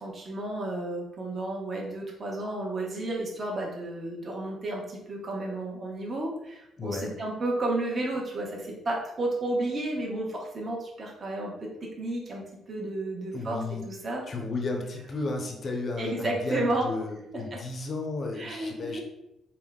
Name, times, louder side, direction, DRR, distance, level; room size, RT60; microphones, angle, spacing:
voice 1, 0.0-4.8 5.1-6.3 6.8-8.5 8.9-10.3 10.5-11.5 12.0-12.4 12.7-13.6 13.9-14.2 16.0-16.9 18.4-19.0, right 2 dB, 40° right, -2 dB, 1.1 m, -31 dB
voice 2, 6.8-7.1 13.3-13.8 14.3-19.0, left 3 dB, 45° left, 2 dB, 0.7 m, -33 dB
3.5 x 2.3 x 3.6 m, 0.86 s
cardioid pair, 90°, 0 cm